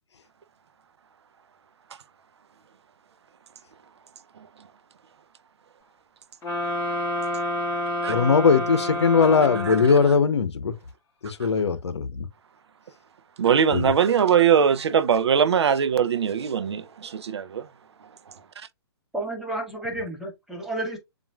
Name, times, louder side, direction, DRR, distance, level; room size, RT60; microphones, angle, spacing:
sound 1, 6.4-10.3, left 1 dB, 20° left, 2.3 m, -29 dB
voice 1, 8.1-10.7 11.2-12.3 13.7-13.9, left 5 dB, 80° left, 0.9 m, -20 dB
voice 2, 13.4-17.7, right 7 dB, 75° right, 0.6 m, -21 dB
voice 3, 19.1-21.0, right 1 dB, ahead, 1.4 m, -31 dB
7.1 x 2.6 x 2.3 m
hypercardioid pair, 135°, 14 cm